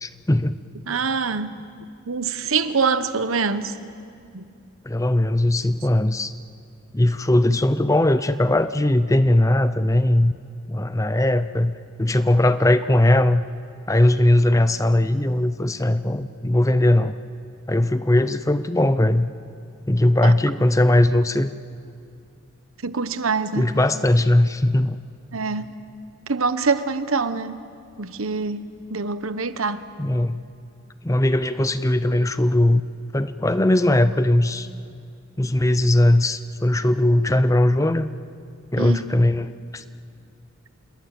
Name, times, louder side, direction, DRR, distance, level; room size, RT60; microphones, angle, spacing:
voice 1, 0.0-0.6 4.8-6.3 6.9-10.3 10.7-13.5 13.9-17.1 17.7-19.3 19.9-21.5 23.6-25.0 30.0-30.4 31.0-32.8 33.1-34.7 35.4-38.1 38.7-39.8, left 1 dB, 15° left, 0.6 m, -19 dB
voice 2, 0.9-1.6 2.1-3.7 4.3-4.4 20.2-20.3 22.8-23.7 25.3-25.7 26.3-27.6 28.0-29.8 38.8-39.1, right 4 dB, 80° right, 1.1 m, -25 dB
28.0 x 21.0 x 9.1 m
head